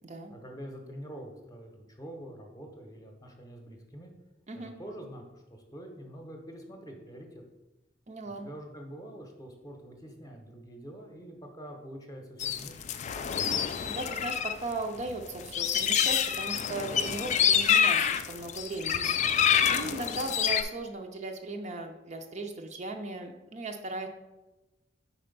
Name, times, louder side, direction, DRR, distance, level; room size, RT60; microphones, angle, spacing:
voice 1, 0.3-4.1 4.5-7.4 8.3-12.9, equal, 20° left, 2 dB, 0.8 m, -45 dB
voice 2, 8.1-8.5 13.9-19.2 19.7-24.1, right 2 dB, 40° right, 4 dB, 0.5 m, -37 dB
sound 1, 12.4-14.5 14.8-20.6, left 8 dB, 40° left, 0.3 m, -27 dB
4.9 x 4.3 x 5.2 m, 1.1 s
head